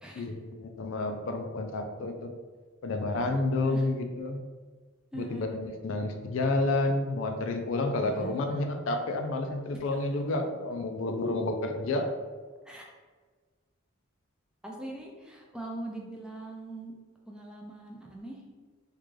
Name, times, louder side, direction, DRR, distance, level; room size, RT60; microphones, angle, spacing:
voice 1, 0.2-2.3 2.8-4.4 5.1-12.0, left 2 dB, 65° left, 5 dB, 0.4 m, -30 dB
voice 2, 5.1-5.5 8.0-8.4 12.7-12.8 14.6-16.9 17.3-18.4, right 1 dB, 5° right, -1 dB, 0.4 m, -41 dB
3.6 x 2.4 x 3.1 m, 1.4 s
head